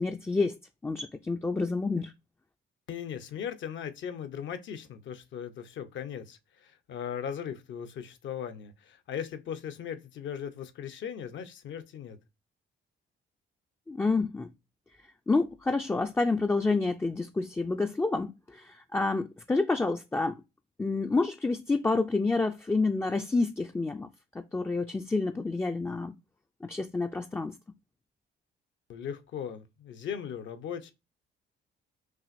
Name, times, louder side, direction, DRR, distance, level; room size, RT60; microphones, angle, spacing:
voice 1, 0.0-2.1 13.9-14.5 15.3-20.4 20.8-24.1 24.5-26.1 26.6-27.6, left 3 dB, 10° left, 0.3 m, -28 dB
voice 2, 2.9-12.2 28.9-30.9, left 8 dB, 70° left, 0.8 m, -38 dB
6.1 x 2.5 x 2.5 m
cardioid pair, 90°, 20 cm